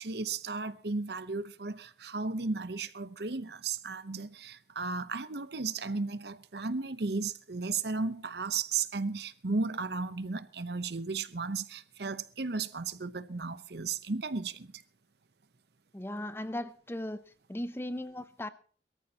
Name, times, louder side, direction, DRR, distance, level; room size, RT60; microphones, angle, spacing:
voice 1, 0.0-14.8, right 4 dB, 65° right, 0.9 m, -35 dB
voice 2, 15.9-17.2 17.5-18.5, left 1 dB, 15° left, 0.6 m, -37 dB
22.5 x 14.0 x 2.9 m
head